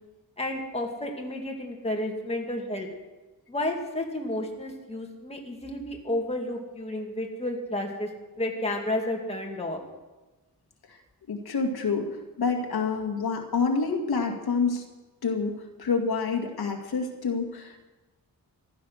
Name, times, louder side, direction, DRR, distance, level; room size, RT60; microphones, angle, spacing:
voice 1, 0.4-2.9 3.5-8.1 8.4-9.8, left 1 dB, 15° left, 0 dB, 2.5 m, -31 dB
voice 2, 11.3-14.8 15.2-17.9, left 4 dB, 90° left, 3 dB, 2.2 m, -28 dB
15.0 x 13.0 x 6.5 m, 1.1 s
wide cardioid pair, 125°, 37 cm